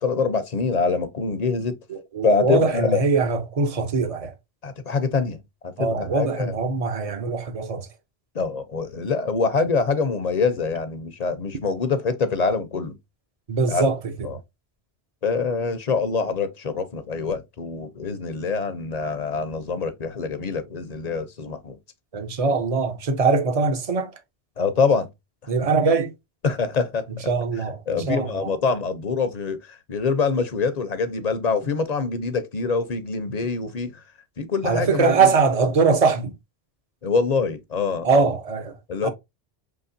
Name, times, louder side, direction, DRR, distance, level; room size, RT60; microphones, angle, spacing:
voice 1, 0.0-1.8 2.2-3.0 4.6-6.6 8.3-13.0 13.7-13.8 14.2-14.4 15.2-21.8 24.6-25.1 26.4-27.1 27.9-34.0 34.4-35.3 37.0-38.2 38.9-39.1, left 4 dB, 45° left, 0.8 m, -25 dB
voice 2, 1.9-4.3 5.8-7.9 13.5-14.1 22.1-24.1 25.5-26.1 27.3-28.5 34.6-36.3 38.0-38.8 39.0-39.1, right 4 dB, 40° right, 0.8 m, -22 dB
5.8 x 3.1 x 2.6 m
omnidirectional pair, 1.1 m